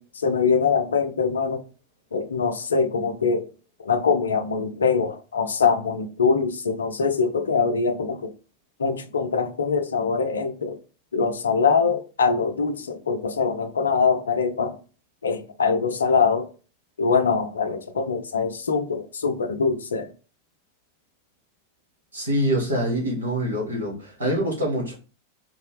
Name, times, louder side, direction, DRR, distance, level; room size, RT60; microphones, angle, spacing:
voice 1, 0.0-1.6 2.1-3.5 3.8-8.3 8.8-10.8 11.1-14.8 15.2-16.5 17.0-20.1, left 5 dB, 70° left, 0.5 m, -23 dB
voice 2, 22.1-25.0, equal, 70° right, 1.8 m, -25 dB
3.7 x 2.8 x 3.2 m
figure-of-eight pair, 90°, 0 cm